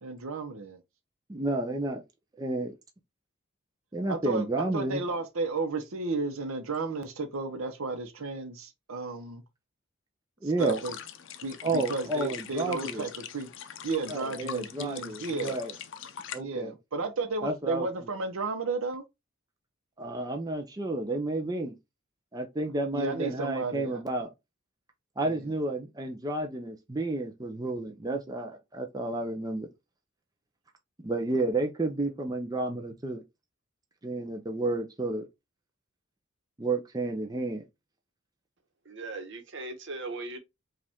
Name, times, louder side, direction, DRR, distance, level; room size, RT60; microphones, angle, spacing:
voice 1, 0.0-0.8 4.1-9.4 10.4-11.0 11.4-13.5 13.8-15.6 16.4-19.0 22.9-24.0 25.2-25.5, right 3 dB, 80° right, 0.9 m, -33 dB
voice 2, 1.3-2.0 2.4-2.7 3.9-5.0 10.4-10.8 11.6-13.1 14.1-15.7 16.3-16.7 17.4-17.9 20.0-21.8 22.3-24.3 25.2-29.7 31.0-33.2 34.0-35.3 36.6-37.6, right 2 dB, 20° right, 0.5 m, -31 dB
sound 1, 10.6-16.4, left 9 dB, 60° left, 0.5 m, -42 dB
voice 3, 38.8-40.4, right 2 dB, 60° right, 1.1 m, -38 dB
5.0 x 2.5 x 3.5 m
head